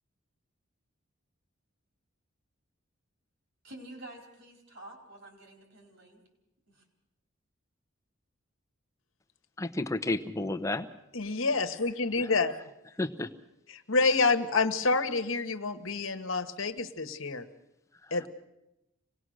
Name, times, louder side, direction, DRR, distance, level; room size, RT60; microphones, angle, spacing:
voice 1, 3.6-6.2 6.7-6.8, right 1 dB, 60° right, 2 dB, 4.3 m, -49 dB
voice 2, 9.6-10.9 12.2-12.3 13.0-13.3 18.1-18.2, left 2 dB, 15° left, 7 dB, 0.8 m, -32 dB
voice 3, 11.1-12.5 13.7-17.4 18.1-18.3, left 3 dB, 70° left, 9 dB, 1.3 m, -28 dB
26.0 x 19.0 x 6.4 m, 0.90 s
head